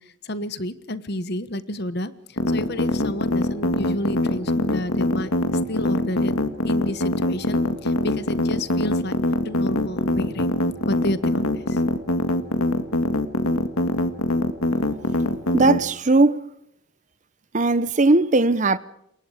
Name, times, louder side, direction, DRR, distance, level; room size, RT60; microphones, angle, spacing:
voice 1, 0.0-5.3 5.7-6.3 6.6-9.2 9.4-10.5 10.9-11.8, left 1 dB, 50° left, 1.2 m, -30 dB
sound 1, 2.4-15.8, left 1 dB, 85° left, 2.0 m, -22 dB
voice 2, 15.5-16.4 17.5-18.8, right 2 dB, 35° right, 0.8 m, -18 dB
28.0 x 23.0 x 5.0 m
head